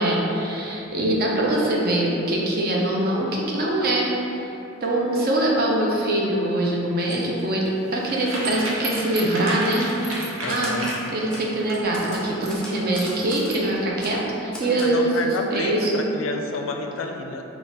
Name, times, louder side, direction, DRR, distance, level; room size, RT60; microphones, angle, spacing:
voice 1, 0.0-4.5 4.8-9.9 10.5-10.8 11.1-16.0, right 1 dB, 50° right, -3 dB, 0.6 m, -23 dB
sound 1, 7.0-13.8, right 1 dB, 90° right, 0.7 m, -32 dB
Typewriter, 10.0-11.0 11.3-11.4 11.9-13.6 14.0-14.2 14.5-14.9, left 1 dB, 5° left, 0.5 m, -38 dB
voice 2, 10.4-10.9 14.6-17.4, left 3 dB, 75° left, 3 dB, 0.4 m, -30 dB
4.0 x 2.4 x 3.5 m, 2.9 s
head